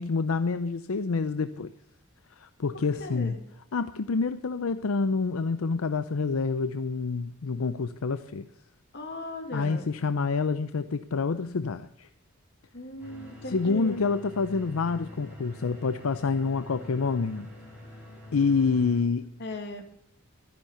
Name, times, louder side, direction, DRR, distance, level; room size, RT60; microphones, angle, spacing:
voice 1, 0.0-1.7 2.4-3.4 3.7-8.5 9.5-12.1 13.5-17.5 18.3-19.3, left 4 dB, 85° left, 11 dB, 0.6 m, -27 dB
voice 2, 3.0-3.4 8.9-9.9 12.7-14.0 19.4-19.8, left 2 dB, 55° left, 5 dB, 2.3 m, -38 dB
sound 1, 13.0-19.0, left 1 dB, 10° right, 7.8 m, -45 dB
13.5 x 10.5 x 6.7 m, 0.69 s
head